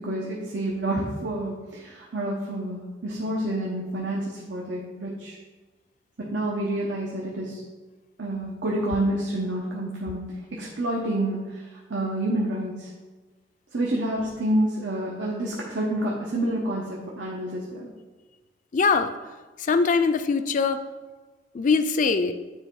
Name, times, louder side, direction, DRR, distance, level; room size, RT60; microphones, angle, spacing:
voice 1, 0.0-5.4 6.2-7.6 8.2-12.9 13.7-17.9, right 1 dB, 90° right, -3 dB, 1.0 m, -28 dB
voice 2, 18.7-19.1 19.6-20.8 21.5-22.3, left 4 dB, 45° left, 10 dB, 0.4 m, -22 dB
9.4 x 3.4 x 4.6 m, 1.3 s
head